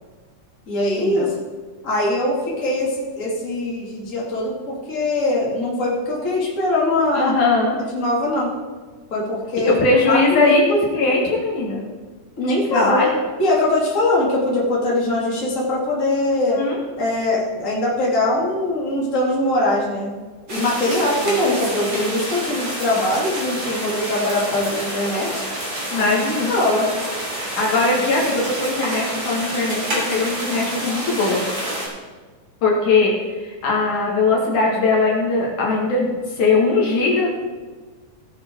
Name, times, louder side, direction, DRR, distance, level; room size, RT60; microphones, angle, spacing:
voice 1, 0.7-1.3 1.8-7.3 7.9-8.5 9.1-9.7 10.1-10.7 12.4-13.0 13.4-16.6 17.0-20.2 20.5-25.4 25.9-26.2 26.5-26.9, left 1 dB, 25° left, -5 dB, 2.8 m, -22 dB
voice 2, 7.1-7.8 9.6-11.9 12.7-13.1 16.5-16.8 21.2-21.3 25.9-26.5 27.6-31.4 32.6-36.1 36.4-37.3, left 3 dB, 65° left, -2 dB, 3.2 m, -20 dB
sound 1, 20.5-31.9, right 1 dB, 30° right, 3.7 m, -28 dB
17.5 x 6.7 x 4.6 m, 1.4 s
omnidirectional pair, 3.8 m